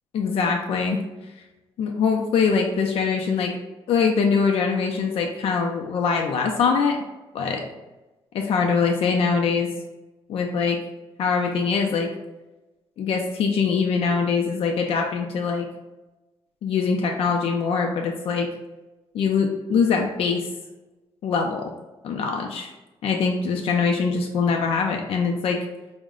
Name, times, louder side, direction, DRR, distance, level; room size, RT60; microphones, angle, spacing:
voice 1, 0.1-1.0 1.8-3.6 3.9-7.0 7.3-7.6 8.3-9.7 10.3-10.8 11.2-12.1 13.0-15.6 16.6-18.5 19.1-20.5 21.2-21.7 22.0-22.7 23.0-25.6, left 5 dB, 70° left, 2 dB, 0.5 m, -23 dB
4.6 x 2.1 x 3.6 m, 1.1 s
cardioid pair, 105°, 10 cm